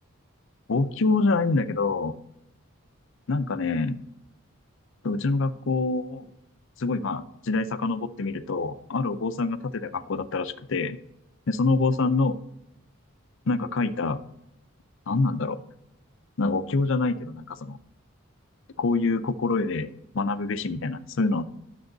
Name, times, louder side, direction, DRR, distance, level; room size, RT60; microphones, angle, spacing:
voice 1, 0.7-2.2 3.3-4.0 5.0-6.3 6.8-11.0 11.5-12.4 13.5-14.2 15.1-15.6 16.4-17.8 18.8-21.4, left 3 dB, 60° left, 11 dB, 0.6 m, -26 dB
10.5 x 7.0 x 3.9 m, 0.84 s
head